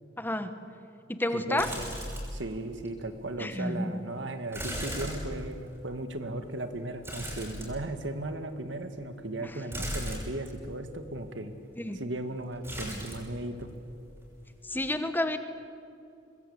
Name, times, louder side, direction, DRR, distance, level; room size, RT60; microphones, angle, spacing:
voice 1, 0.2-0.5 1.1-1.7 3.4-3.9 9.4-9.5 11.8-12.0 14.7-15.4, left 1 dB, 10° left, 9 dB, 1.4 m, -30 dB
voice 2, 1.3-1.9 2.3-11.5 11.9-13.7, right 1 dB, 80° right, 8 dB, 1.9 m, -36 dB
sound 1, 1.6-2.5 2.9-3.0 4.5-5.8 7.0-8.1 9.7-10.5 12.6-13.4 13.6-14.2 14.6-14.7, equal, 15° right, 6.4 m, -37 dB
25.0 x 21.0 x 8.4 m, 2.7 s
head